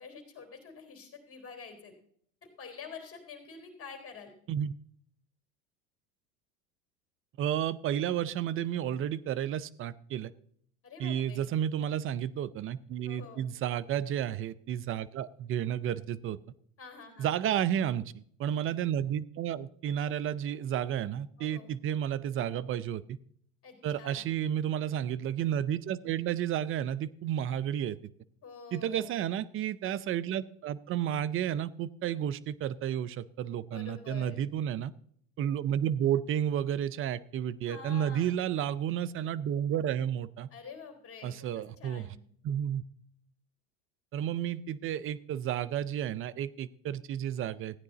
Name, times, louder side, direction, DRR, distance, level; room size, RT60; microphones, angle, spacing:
voice 1, 0.0-1.9 2.4-4.3 10.8-11.5 13.0-13.5 16.8-17.4 21.4-21.7 23.6-24.3 28.4-29.2 33.7-34.4 37.7-38.3 40.5-42.2, left 5 dB, 30° left, 4 dB, 3.4 m, -47 dB
voice 2, 7.4-10.3 11.0-16.4 17.2-23.2 23.8-28.0 28.7-34.9 35.4-40.5 41.2-42.1 42.4-42.8 44.1-47.8, right 10 dB, 30° right, 18 dB, 0.5 m, -32 dB
15.0 x 9.5 x 4.0 m, 0.64 s
hypercardioid pair, 100°, 42 cm